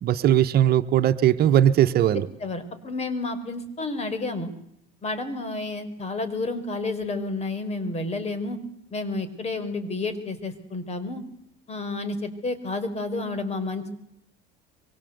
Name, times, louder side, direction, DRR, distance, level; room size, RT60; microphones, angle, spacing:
voice 1, 0.0-2.3, right 11 dB, 55° right, 9 dB, 1.3 m, -19 dB
voice 2, 2.4-4.5 5.0-8.6 8.9-11.2 11.7-13.9, left 2 dB, 35° left, 11 dB, 4.8 m, -30 dB
24.5 x 24.0 x 8.1 m, 0.76 s
supercardioid pair, 110°, 20 cm